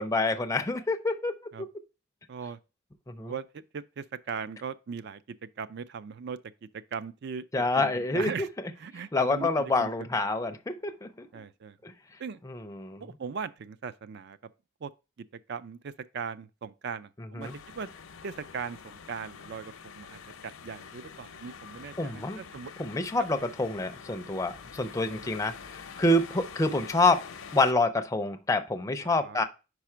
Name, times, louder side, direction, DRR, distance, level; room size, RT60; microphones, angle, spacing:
voice 1, 0.0-1.7 3.1-3.3 7.5-8.3 9.1-11.4 11.8-11.9 12.5-13.0 17.3-17.6 22.0-22.4 22.8-27.2 27.5-29.4, left 2 dB, 15° left, 0.4 m, -27 dB
voice 2, 2.3-2.6 3.2-7.4 7.8-8.5 8.8-9.9 11.3-11.8 12.2-12.4 13.0-14.4 14.8-14.9 15.5-17.9 18.2-22.7 23.2-23.3 29.0-29.4, right 6 dB, 55° right, 0.4 m, -39 dB
sound 1, 17.4-27.7, left 6 dB, 85° left, 0.6 m, -46 dB
4.9 x 4.8 x 4.4 m
head